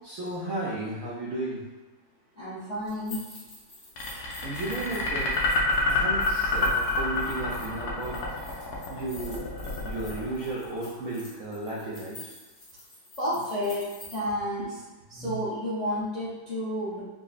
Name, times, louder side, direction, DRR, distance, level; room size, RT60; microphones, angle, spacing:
voice 1, 0.0-1.6 4.4-5.3 5.9-8.2 8.9-9.4 9.8-12.3 15.1-15.4, right 2 dB, 85° right, -5 dB, 0.7 m, -34 dB
voice 2, 2.3-3.2 13.2-14.7 15.1-17.0, equal, 60° left, -11 dB, 0.4 m, -31 dB
sound 1, 2.8-14.1, left 2 dB, 40° left, 0.8 m, -48 dB
sound 2, 4.0-11.1, left 3 dB, 80° left, 1.4 m, -28 dB
4.9 x 2.0 x 2.4 m, 1.2 s
omnidirectional pair, 2.1 m